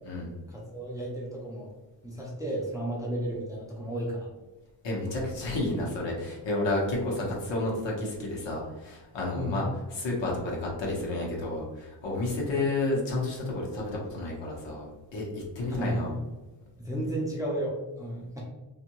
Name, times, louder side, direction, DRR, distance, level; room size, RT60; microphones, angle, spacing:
voice 1, 0.5-1.7 2.0-4.3 9.4-9.6 15.7-16.2 16.8-18.4, right 1 dB, 10° right, -4 dB, 0.4 m, -33 dB
voice 2, 4.8-9.7 9.9-14.9 15.1-16.1, left 2 dB, 75° left, -2 dB, 1.0 m, -31 dB
2.6 x 2.5 x 2.9 m, 1.1 s
wide cardioid pair, 170°, 44 cm